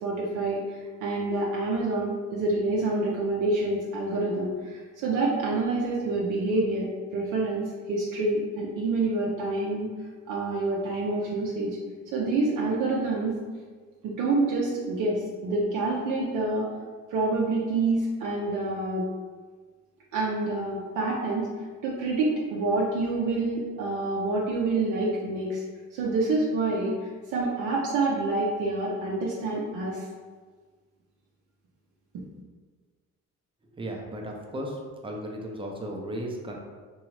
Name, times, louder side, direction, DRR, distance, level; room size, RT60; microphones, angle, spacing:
voice 1, 0.0-6.9 7.1-9.9 10.3-11.8 12.1-13.4 14.0-16.7 17.1-19.0 20.1-21.5 21.8-25.6 25.9-26.9 27.3-30.1, right 2 dB, 80° right, -4 dB, 0.6 m, -27 dB
voice 2, 33.8-36.6, right 1 dB, 20° right, 0 dB, 0.5 m, -35 dB
2.8 x 2.3 x 3.0 m, 1.5 s
cardioid pair, 90°, 30 cm